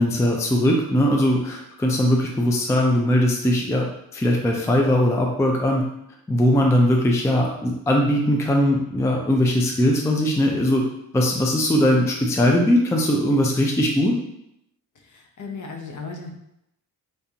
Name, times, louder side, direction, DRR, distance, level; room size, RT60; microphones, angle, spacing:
voice 1, 0.0-5.9 6.3-10.8 11.1-14.2, left 1 dB, 10° left, 0 dB, 0.3 m, -20 dB
voice 2, 15.0-16.3, left 4 dB, 55° left, 1 dB, 0.7 m, -36 dB
5.2 x 2.4 x 2.8 m, 0.79 s
wide cardioid pair, 165°, 37 cm